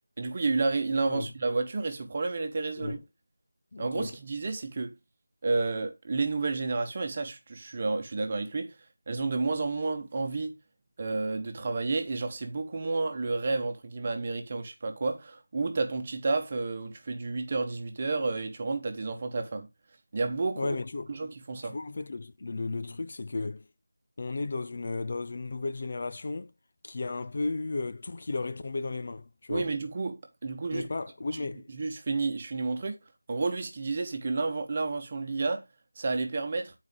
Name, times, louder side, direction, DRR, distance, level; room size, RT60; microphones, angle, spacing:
voice 1, 0.2-3.0 3.8-4.9 5.4-8.7 9.1-10.6 11.0-19.7 20.1-20.8 21.1-21.8 29.5-30.9 31.3-31.5 31.7-33.0 33.3-35.6 36.0-36.7, right 3 dB, 30° right, 1.1 m, -31 dB
voice 2, 3.7-4.1 20.6-21.1 21.7-23.7 24.2-26.5 26.8-29.7 30.7-31.7, left 3 dB, 40° left, 0.5 m, -34 dB
9.4 x 4.7 x 3.7 m
figure-of-eight pair, 175°, 0 cm